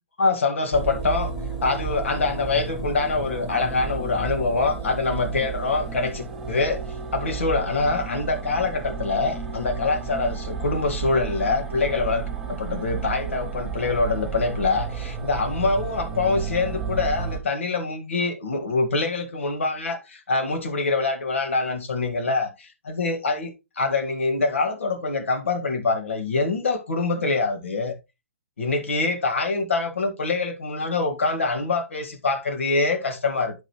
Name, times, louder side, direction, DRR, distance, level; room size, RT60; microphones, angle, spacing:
voice 1, 0.2-1.3 1.6-6.8 7.1-23.5 23.8-28.0 28.6-33.6, left 3 dB, 65° left, 1.9 m, -25 dB
sound 1, 0.7-17.4, right 5 dB, 5° right, 2.7 m, -32 dB
10.5 x 5.2 x 3.1 m
figure-of-eight pair, 125°, 7 cm